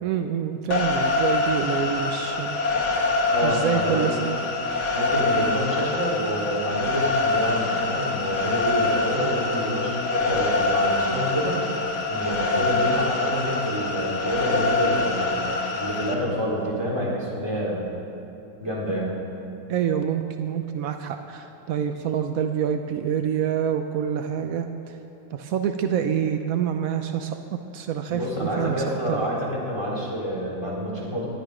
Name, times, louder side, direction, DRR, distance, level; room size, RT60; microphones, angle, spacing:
voice 1, 0.0-2.6 3.4-4.4 19.7-25.0 25.3-27.4 27.7-29.2, right 8 dB, 80° right, 6 dB, 0.7 m, -27 dB
sound 1, 0.7-16.1, left 3 dB, 40° left, 1.3 m, -25 dB
voice 2, 3.3-4.2 4.9-11.6 12.1-17.9 18.6-19.2 28.1-31.3, equal, 10° right, -7 dB, 3.6 m, -28 dB
19.0 x 12.0 x 5.0 m, 2.9 s
omnidirectional pair, 2.3 m